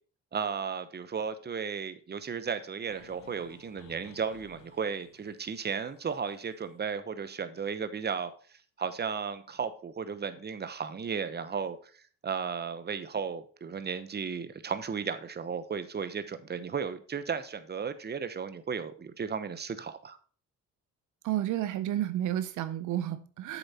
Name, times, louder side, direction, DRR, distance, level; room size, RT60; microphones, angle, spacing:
voice 1, 0.3-8.3 8.8-20.2, right 6 dB, 35° right, 1.0 m, -35 dB
sound 1, 2.9-6.8, left 5 dB, 80° left, 1.8 m, -58 dB
voice 2, 21.2-23.6, right 12 dB, 80° right, 0.6 m, -31 dB
7.9 x 7.1 x 4.3 m
cardioid pair, 90°, 30 cm